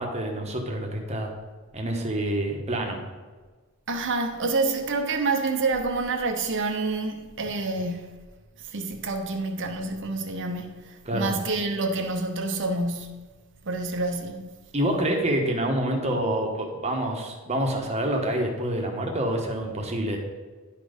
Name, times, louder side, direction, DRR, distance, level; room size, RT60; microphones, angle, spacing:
voice 1, 0.0-1.3 1.7-3.0 11.0-11.3 14.7-20.2, right 1 dB, 30° right, 1.2 m, -27 dB
voice 2, 3.9-8.2 8.6-13.2 13.6-14.5, right 3 dB, 55° right, 0.9 m, -28 dB
10.5 x 4.2 x 5.2 m
head